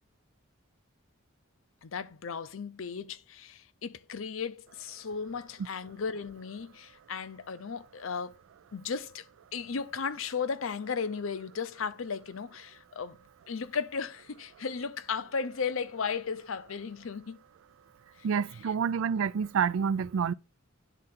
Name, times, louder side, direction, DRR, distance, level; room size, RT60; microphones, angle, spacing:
voice 1, 1.8-8.3 8.7-9.2 9.5-13.2 13.5-17.4 18.2-18.3 18.6-18.7, left 5 dB, 85° left, 0.6 m, -35 dB
voice 2, 18.2-20.3, right 7 dB, 85° right, 0.4 m, -28 dB
10.0 x 3.8 x 4.2 m
head